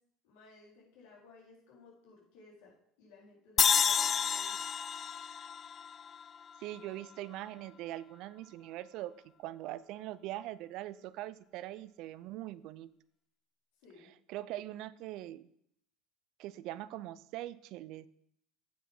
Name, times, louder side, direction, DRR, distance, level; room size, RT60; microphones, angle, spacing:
voice 1, 0.2-4.6 13.8-14.1, left 4 dB, 75° left, -3 dB, 4.2 m, -58 dB
sound 1, 3.6-6.8, left 7 dB, 35° left, 0.3 m, -30 dB
voice 2, 6.6-9.1 9.4-12.9 14.3-15.5 16.4-18.1, right 14 dB, 65° right, 17 dB, 0.5 m, -42 dB
8.5 x 7.3 x 5.5 m, 0.70 s
supercardioid pair, 90°, 0 cm